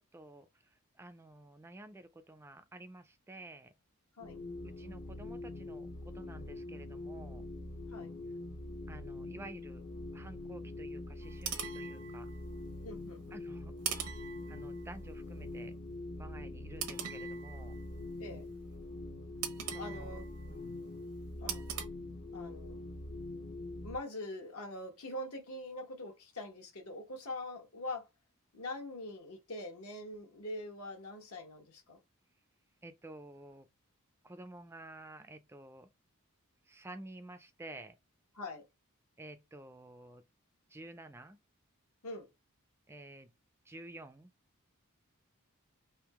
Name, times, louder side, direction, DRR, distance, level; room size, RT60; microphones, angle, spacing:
voice 1, 0.0-3.7 4.6-7.4 8.9-9.9 10.1-12.3 13.3-13.8 14.5-15.7 16.2-17.8 19.7-20.2 20.5-20.8 32.8-33.7 34.2-35.9 36.7-38.0 39.2-40.2 40.7-41.4 42.9-43.3 43.7-44.3, right 1 dB, 10° right, 0.3 m, -51 dB
sound 1, 4.2-24.0, left 2 dB, 50° left, 0.6 m, -44 dB
sound 2, 11.2-12.7 13.8-15.1 16.8-18.1 19.4-20.7 21.5-21.8, right 9 dB, 90° right, 0.9 m, -42 dB
voice 2, 12.8-13.4 18.2-18.5 19.8-20.2 21.4-21.6 22.3-22.8 23.8-28.1 28.5-32.0 38.3-38.6 42.0-42.3, left 1 dB, 75° left, 1.2 m, -43 dB
3.6 x 2.7 x 4.7 m
head